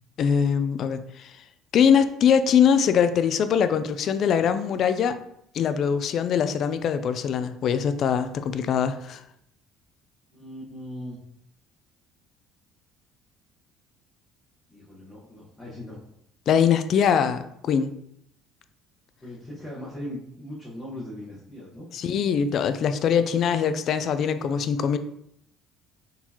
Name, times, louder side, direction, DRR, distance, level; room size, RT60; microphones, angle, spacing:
voice 1, 0.2-1.3 1.7-5.2 5.5-9.2 16.5-17.9 21.9-25.0, left 7 dB, 45° left, 11 dB, 0.3 m, -22 dB
voice 2, 10.3-11.2 14.7-16.0 19.2-21.9, left 1 dB, 10° left, -8 dB, 1.1 m, -39 dB
4.4 x 3.8 x 2.9 m, 0.74 s
cardioid pair, 145°, 0 cm